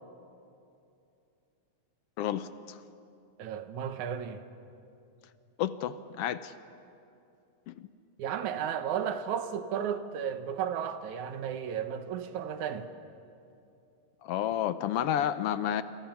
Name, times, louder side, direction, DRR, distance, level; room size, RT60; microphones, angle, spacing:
voice 1, 2.2-2.8 5.6-6.5 7.7-7.9 14.2-15.8, left 10 dB, 70° left, 1.5 m, -31 dB
voice 2, 3.4-4.4 8.2-12.9, right 8 dB, 85° right, 2.6 m, -34 dB
29.0 x 27.5 x 5.9 m
omnidirectional pair, 3.3 m